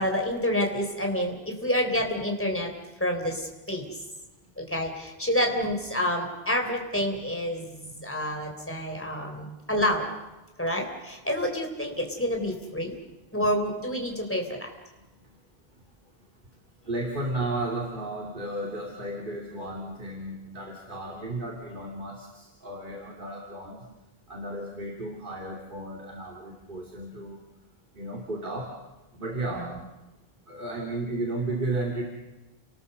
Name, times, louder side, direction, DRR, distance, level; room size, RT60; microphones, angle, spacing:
voice 1, 0.0-2.7 3.0-4.0 4.6-10.1 10.6-13.0 13.3-14.7 29.5-29.7, equal, 10° left, 3 dB, 3.6 m, -28 dB
voice 2, 16.9-23.8 24.3-27.4 28.0-28.7 29.1-29.8 30.5-32.0, right 2 dB, 55° right, 0 dB, 2.9 m, -33 dB
29.5 x 19.5 x 6.8 m, 1.1 s
omnidirectional pair, 1.1 m